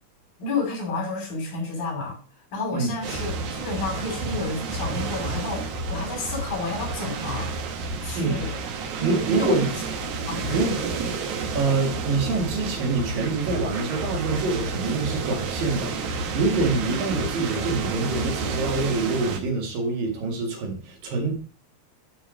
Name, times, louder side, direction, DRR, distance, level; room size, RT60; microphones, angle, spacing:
voice 1, 0.4-2.2 2.5-7.5 8.0-8.5 9.0-9.6 10.2-10.7 17.5-17.6, left 2 dB, 80° left, 0 dB, 4.6 m, -30 dB
sound 1, 3.0-19.4, right 4 dB, 65° right, 2.3 m, -30 dB
voice 2, 9.0-9.7 10.5-10.8 11.6-21.4, right 3 dB, 85° right, 1 dB, 3.8 m, -26 dB
10.0 x 3.8 x 4.9 m, 0.37 s
omnidirectional pair, 3.9 m